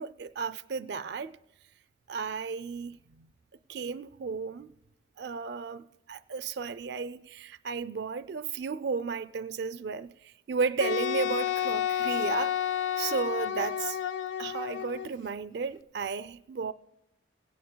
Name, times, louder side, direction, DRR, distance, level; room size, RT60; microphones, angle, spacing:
voice 1, 0.0-1.3 2.1-3.3 3.7-4.7 5.2-12.5 13.0-14.0 14.4-16.7, right 5 dB, 60° right, 0.4 m, -34 dB
Wind instrument woodwind instrument, 10.8-15.1, left 10 dB, 80° left, 0.5 m, -30 dB
18.0 x 17.0 x 2.2 m
head